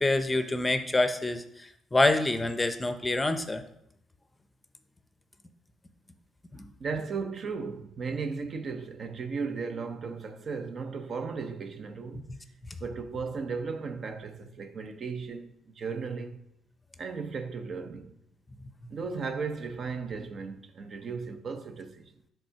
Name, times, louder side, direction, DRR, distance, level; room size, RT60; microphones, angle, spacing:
voice 1, 0.0-3.6 6.5-6.6, left 2 dB, 15° left, 0.6 m, -26 dB
voice 2, 6.8-12.3 12.8-16.4 17.0-18.1 18.9-22.1, right 5 dB, 55° right, 0.6 m, -36 dB
5.3 x 3.7 x 5.7 m
cardioid pair, 90°, 0 cm